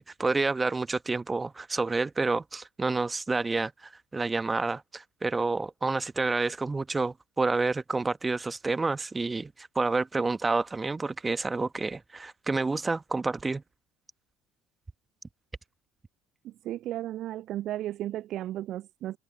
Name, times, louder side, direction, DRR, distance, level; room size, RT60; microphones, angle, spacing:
voice 1, 0.0-13.6, right 3 dB, 20° right, 1.3 m, -29 dB
voice 2, 16.4-19.2, right 13 dB, 50° right, 0.3 m, -34 dB
figure-of-eight pair, 55°, 0 cm